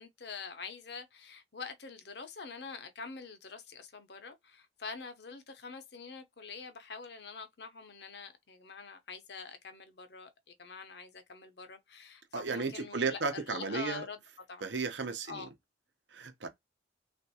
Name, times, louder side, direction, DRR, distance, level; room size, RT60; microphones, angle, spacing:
voice 1, 0.0-10.3 10.6-14.2 14.5-14.6 15.3-15.5, left 5 dB, 65° left, 0.7 m, -45 dB
voice 2, 12.3-14.0 14.6-15.5 16.1-16.5, right 4 dB, 85° right, 0.8 m, -34 dB
3.5 x 2.5 x 2.7 m
head